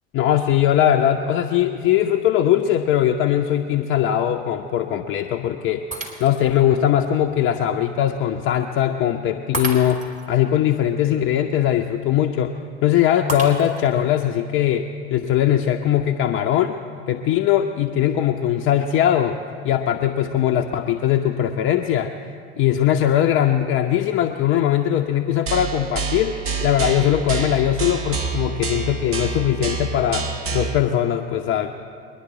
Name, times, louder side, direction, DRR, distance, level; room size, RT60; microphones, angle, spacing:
voice 1, 0.1-5.8 6.2-12.6 12.8-16.8 17.1-19.4 19.6-22.1 22.6-31.7, left 11 dB, 35° left, 4 dB, 0.7 m, -20 dB
Shatter, 5.9-6.6 7.2-7.3 9.5-10.3 13.3-14.0, right 2 dB, 20° right, 2.6 m, -31 dB
sound 1, 25.5-30.8, right 6 dB, 35° right, 1.4 m, -28 dB
22.0 x 10.5 x 4.3 m, 2.3 s
figure-of-eight pair, 75°, 35 cm